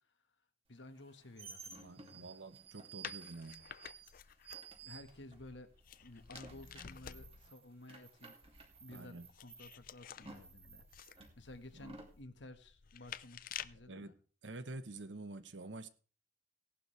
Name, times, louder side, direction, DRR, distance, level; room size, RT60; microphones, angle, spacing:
voice 1, 0.7-2.3 4.8-5.7 6.0-8.4 8.8-14.1, left 1 dB, 85° left, 1.6 m, -54 dB
sound 1, 0.9-5.5 5.8-12.2, right 5 dB, 35° right, 2.6 m, -54 dB
voice 2, 1.8-3.7 8.9-9.3 13.9-14.1 14.4-15.9, right 2 dB, 85° right, 1.1 m, -48 dB
sound 2, 3.0-7.5 9.0-13.9, left 9 dB, 50° left, 0.5 m, -51 dB
17.0 x 11.5 x 3.3 m
head